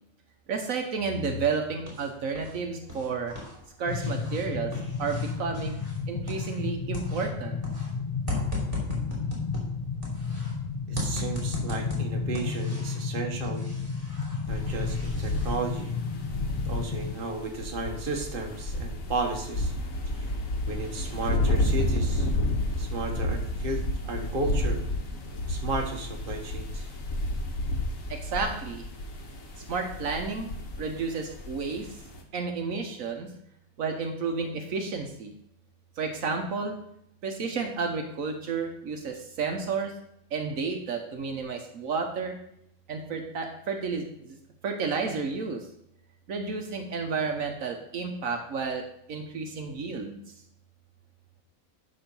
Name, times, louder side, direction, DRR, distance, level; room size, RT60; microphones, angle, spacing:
voice 1, 0.5-3.4 3.8-4.7 5.0-5.8 6.1-7.6 28.1-28.8 29.7-30.5 30.8-32.0 32.3-33.3 33.8-35.3 36.0-36.8 37.2-39.9 40.3-42.4 42.9-44.4 44.6-45.7 46.3-50.2, right 5 dB, 70° right, 4 dB, 1.3 m, -31 dB
sound 1, 1.4-2.6 2.8-6.7 6.9-10.5 11.0-13.1 13.4-15.6, left 2 dB, 15° right, 2.9 m, -38 dB
sound 2, 3.9-17.2, left 5 dB, 45° left, 0.5 m, -32 dB
voice 2, 10.9-13.7 14.5-15.9 16.6-19.7 20.1-20.3 20.7-22.3 22.8-24.8 25.5-26.9, right 3 dB, 40° right, 2 dB, 1.3 m, -34 dB
sound 3, 14.5-32.2, left 1 dB, 70° left, 1.6 m, -31 dB
11.5 x 3.9 x 5.3 m, 0.75 s
omnidirectional pair, 1.5 m